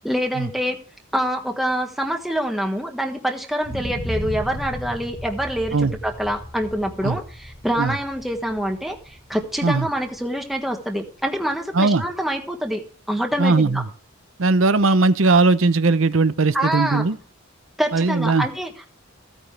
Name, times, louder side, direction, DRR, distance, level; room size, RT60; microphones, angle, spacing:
voice 1, 0.0-0.8 1.1-13.8 16.5-17.0 17.8-18.7, equal, ahead, 1.4 m, -25 dB
sound 1, 3.6-11.5 11.9-12.0, equal, 45° left, 3.5 m, -36 dB
voice 2, 11.7-12.0 13.4-13.9 14.4-17.2 17.9-18.5, right 3 dB, 75° right, 0.8 m, -18 dB
15.5 x 9.2 x 3.4 m
head